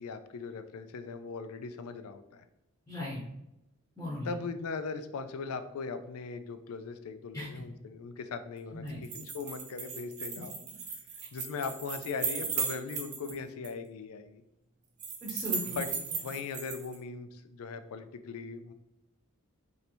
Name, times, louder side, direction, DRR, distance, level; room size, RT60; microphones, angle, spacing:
voice 1, 0.0-2.4 4.2-10.5 11.3-14.4 15.7-15.9 16.2-18.7, left 4 dB, 80° left, 10 dB, 0.4 m, -39 dB
voice 2, 2.9-3.2 4.0-4.3 7.3-7.5 8.7-9.0 15.2-15.8, left 1 dB, 10° left, -5 dB, 0.8 m, -37 dB
sound 1, 8.9-13.3 13.6-13.7 15.0-17.0, right 5 dB, 35° right, 0.6 m, -36 dB
3.2 x 2.7 x 4.3 m, 0.86 s
head